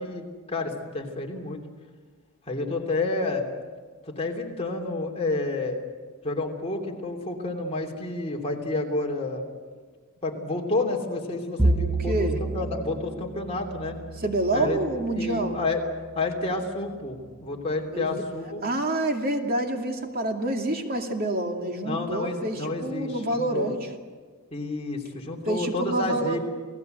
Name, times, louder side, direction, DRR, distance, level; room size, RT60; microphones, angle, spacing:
voice 1, 0.0-1.6 2.5-3.5 4.0-5.8 6.2-9.5 10.2-14.0 14.5-14.8 15.1-15.8 16.1-18.6 21.8-23.7 24.5-26.4, left 2 dB, 30° left, 1 dB, 3.1 m, -30 dB
Bowed string instrument, 11.6-16.0, right 2 dB, 10° right, 0.8 m, -30 dB
voice 2, 12.1-12.4 14.2-15.6 17.9-18.1 18.6-23.8 25.4-26.4, right 1 dB, 45° right, 3 dB, 2.5 m, -27 dB
29.0 x 18.5 x 8.0 m, 1.5 s
head